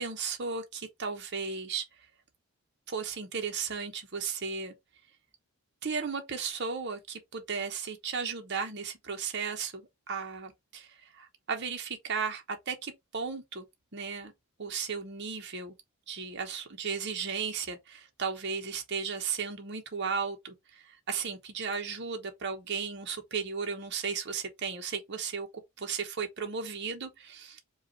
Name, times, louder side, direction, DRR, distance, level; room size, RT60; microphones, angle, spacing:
voice 1, 0.0-1.8 2.9-4.7 5.8-13.7 13.9-14.3 14.6-15.7 16.1-25.5 25.8-27.6, right 5 dB, 50° right, 0.9 m, -35 dB
5.0 x 2.4 x 4.3 m
head